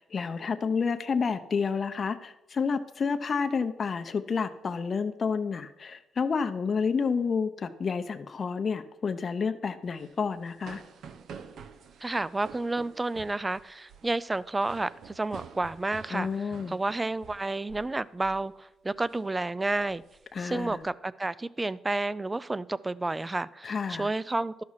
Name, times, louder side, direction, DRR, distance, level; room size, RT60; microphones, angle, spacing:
voice 1, 0.1-10.8 16.1-16.7 20.3-20.8 23.6-24.1, left 5 dB, 40° left, 9 dB, 0.6 m, -30 dB
sound 1, 9.9-17.9 18.2-18.5 18.9-19.2 19.6-20.8, right 6 dB, 70° right, 0.8 m, -49 dB
voice 2, 12.0-20.0 20.4-24.6, right 2 dB, 20° right, 18 dB, 0.4 m, -31 dB
12.5 x 5.7 x 4.7 m, 0.91 s
cardioid pair, 90°, 0 cm